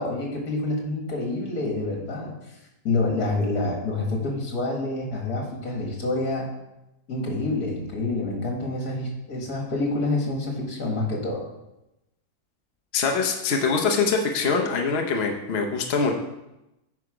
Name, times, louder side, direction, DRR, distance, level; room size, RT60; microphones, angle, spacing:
voice 1, 0.0-2.4 2.8-6.5 7.1-11.4, left 2 dB, 70° left, 0 dB, 2.3 m, -27 dB
voice 2, 12.9-16.1, left 4 dB, 45° left, 2 dB, 0.9 m, -23 dB
9.1 x 4.9 x 4.9 m, 0.92 s
omnidirectional pair, 1.7 m